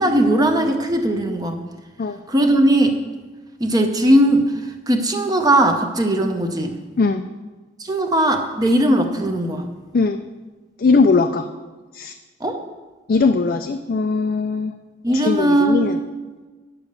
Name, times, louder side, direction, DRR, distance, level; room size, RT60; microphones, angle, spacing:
voice 1, 0.0-1.6 2.3-3.0 3.6-6.8 7.8-9.7 12.4-12.6 15.0-16.0, right 1 dB, 20° right, 5 dB, 0.7 m, -18 dB
voice 2, 10.8-11.5 11.9-12.1 13.1-14.7 15.1-16.0, left 4 dB, 45° left, 6 dB, 0.4 m, -19 dB
9.3 x 7.0 x 6.7 m, 1.3 s
head